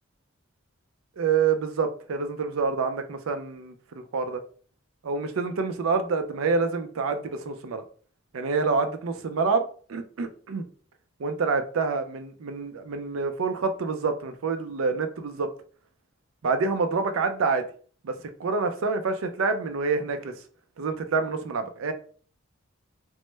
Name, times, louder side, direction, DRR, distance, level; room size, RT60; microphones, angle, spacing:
voice 1, 1.2-4.4 5.0-7.8 8.3-10.6 11.2-15.5 16.4-17.6 18.0-18.1 18.4-20.3 20.8-21.9, right 4 dB, 80° right, 8 dB, 0.4 m, -27 dB
3.1 x 2.1 x 3.1 m, 0.43 s
head